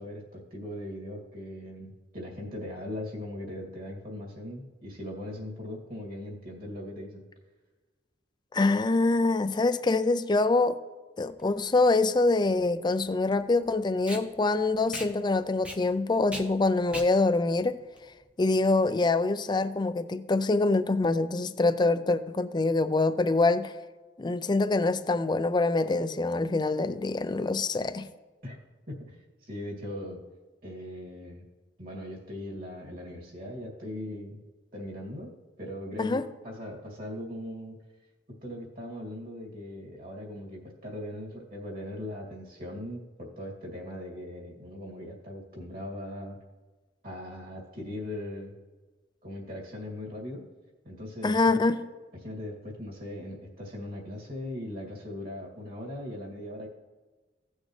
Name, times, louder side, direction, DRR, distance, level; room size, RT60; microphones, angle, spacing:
voice 1, 0.0-7.2 28.4-28.6 28.9-29.2 29.4-30.2 30.6-31.4 31.8-34.4 34.7-35.3 35.6-37.8 38.3-46.4 47.0-48.5 49.2-50.4 50.8-51.7 52.2-56.7, left 1 dB, 55° right, 2.4 m, -39 dB
voice 2, 8.5-10.8 11.2-17.8 18.4-23.7 24.2-28.1 36.0-36.2 51.2-51.8, left 3 dB, 25° left, 0.4 m, -25 dB
Packing tape duct tape, 11.3-18.8, equal, 5° right, 0.8 m, -43 dB
16.0 x 6.4 x 3.2 m
head